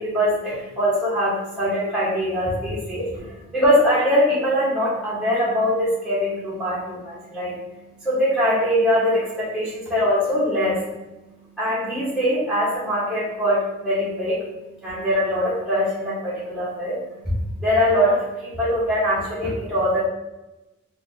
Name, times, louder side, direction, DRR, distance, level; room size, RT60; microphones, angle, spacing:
voice 1, 0.0-7.6 8.0-10.8 11.6-14.4 14.8-17.3 17.6-20.0, equal, 5° right, -9 dB, 1.0 m, -22 dB
4.4 x 2.7 x 2.6 m, 1.0 s
head